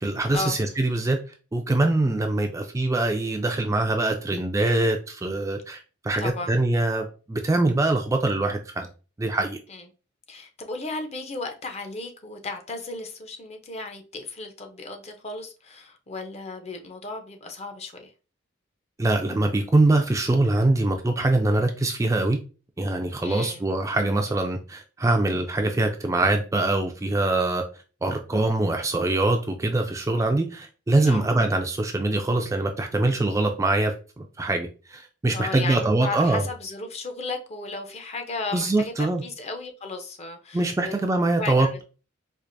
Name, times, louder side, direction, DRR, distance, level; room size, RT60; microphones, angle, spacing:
voice 1, 0.0-1.2 1.5-8.9 9.2-9.6 19.0-22.4 22.8-27.6 28.0-36.4 38.5-39.2 40.5-41.7, right 2 dB, 15° right, 0.3 m, -23 dB
voice 2, 6.2-6.5 9.7-9.8 10.3-18.1 23.2-23.6 31.1-31.2 35.3-40.9 41.3-41.8, left 3 dB, 35° left, 0.6 m, -35 dB
4.5 x 2.5 x 2.5 m
head